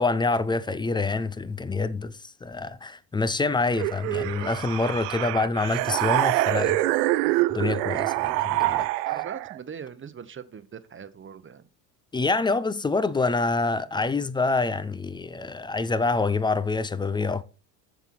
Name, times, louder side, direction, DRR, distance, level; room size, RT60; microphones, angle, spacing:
voice 1, 0.0-6.8 7.5-8.9 12.1-17.4, left 3 dB, 10° left, 0.3 m, -26 dB
sound 1, 3.7-9.6, right 17 dB, 70° right, 0.7 m, -25 dB
voice 2, 9.0-11.7, right 7 dB, 25° right, 0.9 m, -40 dB
7.8 x 7.1 x 4.3 m
hypercardioid pair, 70°, 49 cm